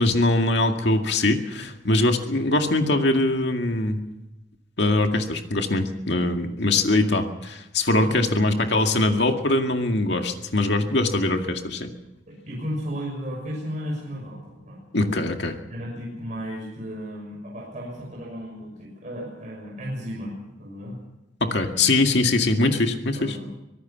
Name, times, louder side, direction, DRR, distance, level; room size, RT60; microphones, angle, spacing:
voice 1, 0.0-4.0 4.8-11.9 14.9-15.6 21.4-23.4, left 2 dB, 60° left, 4 dB, 2.1 m, -22 dB
voice 2, 8.0-8.7 12.3-14.8 15.7-21.0 23.2-23.5, equal, 40° right, -3 dB, 6.3 m, -34 dB
24.5 x 18.0 x 5.9 m, 0.98 s
head